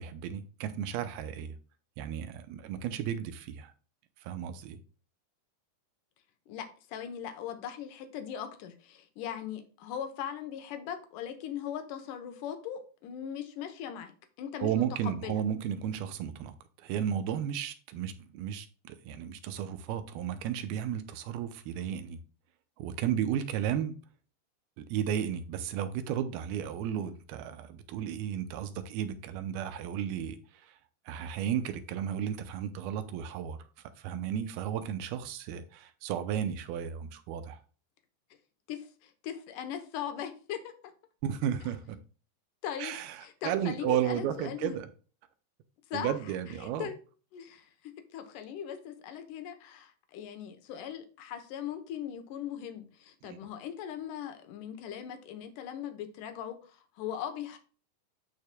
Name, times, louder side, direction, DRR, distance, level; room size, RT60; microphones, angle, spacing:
voice 1, 0.0-1.6 2.0-3.7 4.2-4.8 14.6-16.5 16.8-22.2 22.8-24.0 24.8-30.7 31.1-33.6 34.0-37.6 41.2-42.0 42.8-44.9 45.9-46.9 53.2-53.5, right 9 dB, 80° right, 2.5 m, -34 dB
voice 2, 6.5-14.1 14.4-15.4 38.7-40.7 42.6-43.0 43.2-44.8 45.9-46.2 46.6-47.0 47.3-47.7 48.1-57.6, left 9 dB, 70° left, 2.2 m, -39 dB
13.5 x 4.7 x 2.2 m
omnidirectional pair, 4.4 m